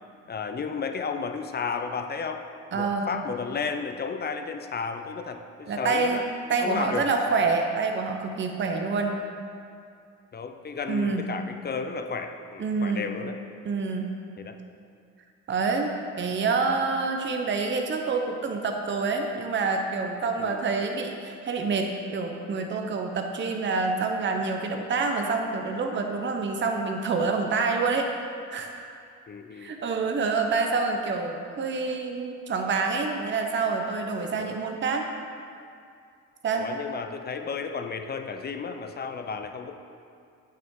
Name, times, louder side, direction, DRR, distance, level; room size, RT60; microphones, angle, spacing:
voice 1, 0.3-2.4 2.7-6.2 6.6-7.1 10.3-13.4 14.4-14.6 20.4-20.6 29.3-29.8 34.4-34.5 36.5-39.8, left 5 dB, 35° left, 7 dB, 0.5 m, -33 dB
voice 2, 2.7-3.2 5.7-9.2 10.9-11.3 12.6-13.1 13.6-14.1 15.5-28.1 28.5-28.7 29.6-35.0 36.4-36.7, right 4 dB, 40° right, 3 dB, 0.8 m, -27 dB
8.8 x 5.9 x 3.7 m, 2.4 s
cardioid pair, 90°, 30 cm